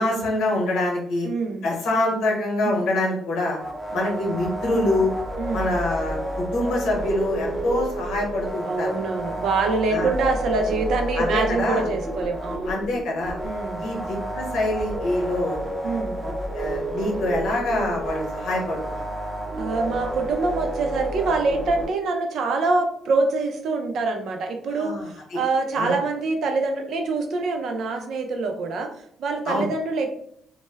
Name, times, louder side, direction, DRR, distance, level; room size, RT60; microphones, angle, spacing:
voice 1, 0.0-1.3 1.6-3.6 3.9-5.1 5.5-8.9 9.9-10.1 11.2-11.8 12.7-13.4 13.8-15.6 16.2-19.0 24.8-25.4 25.7-26.0 29.5-29.7, left 1 dB, 80° left, -1 dB, 0.8 m, -25 dB
voice 2, 1.2-1.7 2.6-2.8 3.9-4.2 5.4-5.7 8.6-12.8 13.4-13.8 15.8-16.2 19.6-28.9 29.2-30.1, right 3 dB, 70° right, 5 dB, 0.4 m, -25 dB
sound 1, 3.6-21.9, right 1 dB, 10° right, 0.6 m, -30 dB
2.2 x 2.0 x 3.3 m, 0.68 s
cardioid pair, 90°, 0 cm